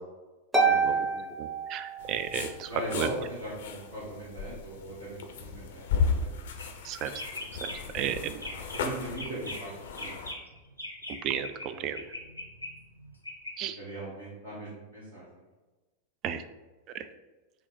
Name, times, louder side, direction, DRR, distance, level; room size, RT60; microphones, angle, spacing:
Harp, 0.5-2.4, right 4 dB, 10° right, 0.7 m, -27 dB
voice 1, 0.6-1.3 2.7-6.3 8.0-10.3 11.6-12.0 13.8-15.2, right 1 dB, 65° right, -10 dB, 1.5 m, -40 dB
voice 2, 1.4-2.7 2.9-3.1 6.9-7.1 7.9-8.3 11.2-12.0 13.6-13.8 16.2-16.4, right 9 dB, 35° right, 11 dB, 0.3 m, -33 dB
sound 1, 2.0-10.3, left 5 dB, 55° left, 0.5 m, -35 dB
sound 2, 6.5-6.8 7.1-8.0 8.3-8.8 9.2-11.7 11.9-13.5, left 1 dB, 90° left, 0.8 m, -40 dB
5.8 x 2.0 x 4.2 m, 1.2 s
figure-of-eight pair, 90°, 0 cm